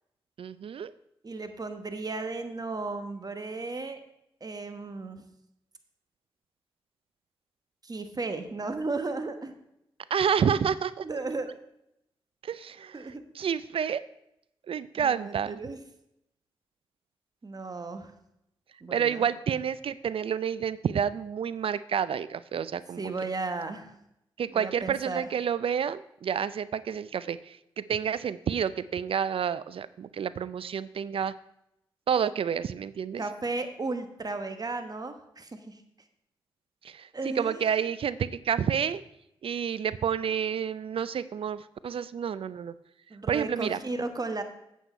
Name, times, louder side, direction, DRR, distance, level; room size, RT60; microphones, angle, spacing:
voice 1, 0.4-0.9 10.1-11.1 12.4-14.0 14.7-15.6 18.9-23.1 24.4-31.3 32.1-33.2 36.8-39.0 39.4-42.7 43.3-43.8, right 8 dB, 65° right, 16 dB, 0.4 m, -29 dB
voice 2, 1.2-4.0 4.4-5.2 7.8-9.5 11.0-11.5 12.9-13.2 15.0-15.8 17.4-18.1 18.8-19.3 23.0-24.0 24.5-25.2 33.2-35.8 37.1-37.7 43.1-44.4, right 3 dB, 40° right, 8 dB, 1.3 m, -35 dB
8.1 x 8.1 x 4.5 m, 0.80 s
cardioid pair, 50°, 10 cm